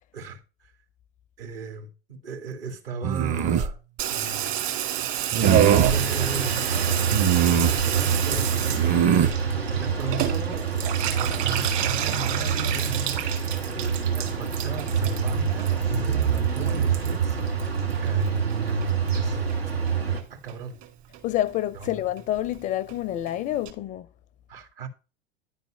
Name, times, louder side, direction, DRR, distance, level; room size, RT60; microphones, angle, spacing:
voice 1, 0.1-0.7 1.4-3.8 4.1-4.6 5.3-9.1 9.7-17.4 17.9-18.3 19.1-19.5 20.3-20.8 21.7-21.9 24.5-24.9, right 4 dB, 65° right, 2.2 m, -37 dB
sound 1, 3.0-3.7 5.3-6.0 7.1-7.8 8.7-9.4, right 8 dB, 25° right, 0.7 m, -22 dB
Water tap faucet / Bathtub (filling or washing), 4.0-18.5 18.8-19.5 19.9-20.0 20.2-20.3 20.5-20.9 21.1-21.2 21.5-21.6 21.8-21.9 22.2-22.3 22.5-22.6 22.9-23.0 23.3-23.4 23.7-23.8, right 10 dB, 45° right, 2.2 m, -29 dB
sound 2, 5.4-20.2, right 6 dB, 90° right, 1.8 m, -26 dB
voice 2, 21.2-24.1, left 13 dB, 25° left, 0.4 m, -28 dB
10.5 x 4.1 x 6.4 m
figure-of-eight pair, 85°, 30 cm